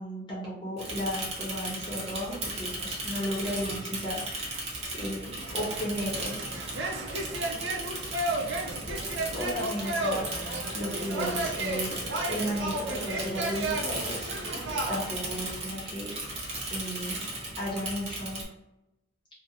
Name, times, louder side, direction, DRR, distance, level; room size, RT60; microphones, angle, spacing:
voice 1, 0.0-4.7 5.0-6.3 9.3-16.1 16.7-17.2 17.6-18.4, equal, 25° left, -6 dB, 0.8 m, -35 dB
Bicycle / Mechanisms, 0.8-18.4, right 2 dB, 35° right, 0.7 m, -36 dB
sound 1, 5.4-15.5, right 2 dB, 80° right, 0.5 m, -33 dB
2.6 x 2.1 x 2.6 m, 0.92 s
head